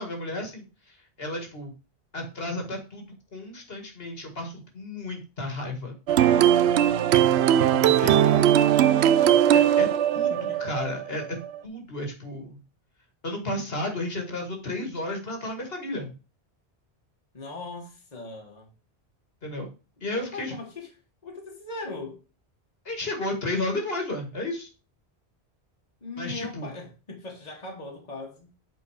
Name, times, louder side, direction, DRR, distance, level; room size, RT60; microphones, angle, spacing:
voice 1, 0.0-1.7 2.1-5.9 7.5-8.5 9.5-10.3 10.6-12.6 13.2-16.1 19.4-19.7 20.0-20.5 22.9-24.7 26.2-26.7, left 1 dB, 65° left, 2.0 m, -33 dB
sound 1, 6.1-11.6, right 10 dB, 80° right, 0.8 m, -20 dB
voice 2, 7.7-8.0 9.2-9.8 10.3-10.6 17.3-18.7 20.1-22.2 26.0-28.5, left 3 dB, 40° left, 1.7 m, -40 dB
8.5 x 4.5 x 4.9 m
omnidirectional pair, 1.1 m